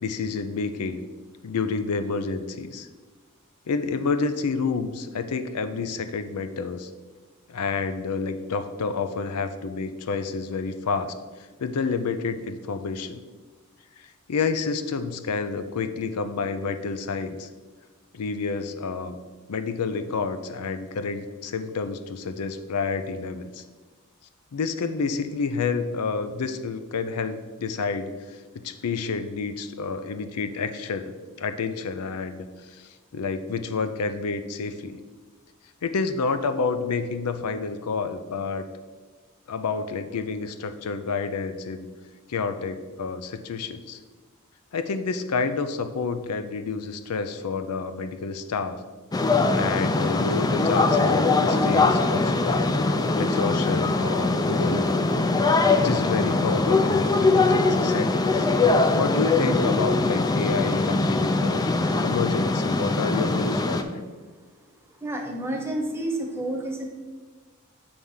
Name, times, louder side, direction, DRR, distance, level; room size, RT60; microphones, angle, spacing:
voice 1, 0.0-1.0 1.4-2.9 3.7-6.9 7.5-11.2 11.6-13.2 14.0-17.5 18.1-19.2 19.5-23.6 24.5-32.5 32.7-35.0 35.8-38.6 39.5-41.9 42.3-44.0 44.7-48.8 49.5-55.0 55.8-58.5 58.9-61.7 62.0-64.0, left 4 dB, 90° left, 10 dB, 0.5 m, -29 dB
sound 1, 49.1-63.8, left 3 dB, 15° left, 0.3 m, -22 dB
voice 2, 65.0-66.9, right 1 dB, 10° right, 1 dB, 0.9 m, -29 dB
7.8 x 3.5 x 5.5 m, 1.4 s
head